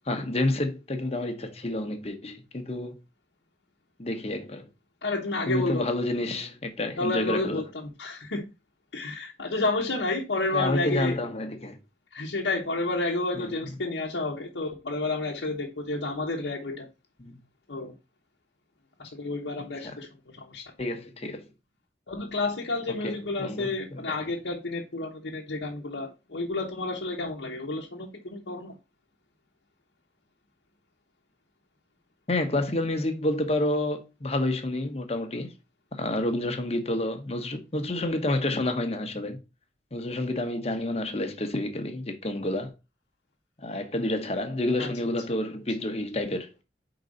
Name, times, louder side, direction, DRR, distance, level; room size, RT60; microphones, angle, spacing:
voice 1, 0.1-3.0 4.0-4.7 5.5-7.6 10.5-11.8 13.4-13.5 17.2-17.3 19.6-19.9 20.8-21.5 23.0-24.2 32.3-35.5 35.9-39.4 39.9-42.7 43.6-46.6, left 1 dB, 35° left, 1.1 m, -29 dB
voice 2, 5.0-5.9 7.0-8.4 8.9-11.2 12.1-16.9 17.7-17.9 19.0-20.6 22.1-28.8 44.8-44.9, left 2 dB, 85° left, 1.0 m, -30 dB
5.3 x 4.0 x 5.2 m
head